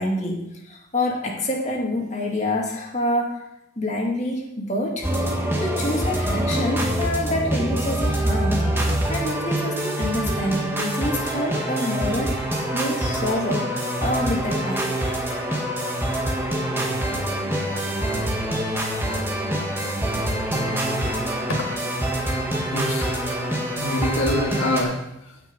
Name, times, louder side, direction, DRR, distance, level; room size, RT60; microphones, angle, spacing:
voice 1, 0.0-3.4 3.8-5.1 5.6-8.8 9.1-12.4 12.7-13.7 14.0-15.0, left 1 dB, 35° left, 0 dB, 2.1 m, -27 dB
sound 1, 5.0-24.8, right 1 dB, 10° right, 1.6 m, -25 dB
voice 2, 21.5-22.2 22.7-25.4, left 1 dB, 85° left, 1 dB, 1.7 m, -27 dB
16.5 x 5.9 x 5.3 m, 0.84 s
head